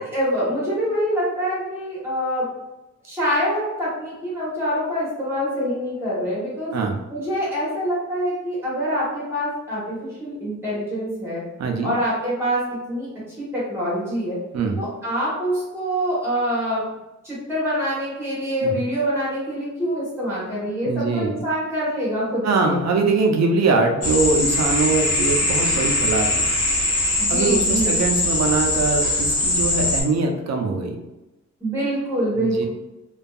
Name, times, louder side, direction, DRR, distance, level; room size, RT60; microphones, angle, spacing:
voice 1, 0.0-2.5 3.0-6.7 7.1-11.4 11.8-14.4 14.8-16.8 17.2-22.8 25.1-25.3 27.2-27.9 31.6-32.7, equal, 10° right, -8 dB, 1.1 m, -25 dB
voice 2, 11.6-12.0 14.5-14.8 18.6-18.8 20.8-21.4 22.4-26.5 27.3-31.0 32.3-32.7, right 3 dB, 60° right, 3 dB, 0.4 m, -22 dB
sound 1, 24.0-30.0, left 1 dB, 55° left, 0.8 m, -21 dB
2.6 x 2.3 x 2.3 m, 1.0 s
wide cardioid pair, 165°, 29 cm